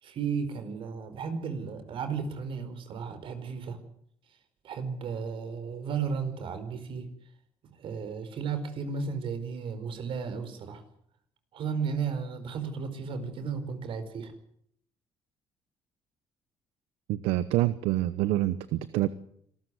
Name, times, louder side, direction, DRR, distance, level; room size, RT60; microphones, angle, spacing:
voice 1, 0.0-3.8 4.6-7.1 7.8-10.8 11.5-14.3, right 6 dB, 65° right, 10 dB, 4.8 m, -34 dB
voice 2, 17.1-19.1, right 15 dB, 85° right, 15 dB, 1.0 m, -26 dB
26.5 x 14.0 x 9.6 m, 0.68 s
cardioid pair, 85°, 10 cm